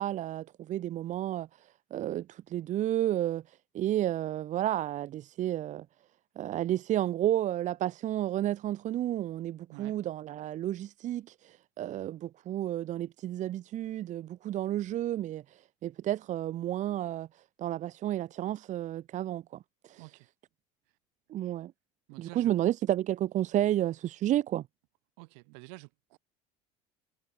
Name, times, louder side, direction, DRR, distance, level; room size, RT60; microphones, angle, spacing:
voice 1, 0.0-1.5 1.9-3.4 3.7-5.8 6.4-17.3 17.6-19.4 19.8-20.0 21.3-21.7 22.2-24.6, right 12 dB, 50° right, 1.0 m, -31 dB
voice 2, 22.1-22.5 25.2-26.2, right 40 dB or more, 80° right, 4.3 m, -49 dB
supercardioid pair, 100°, 16 cm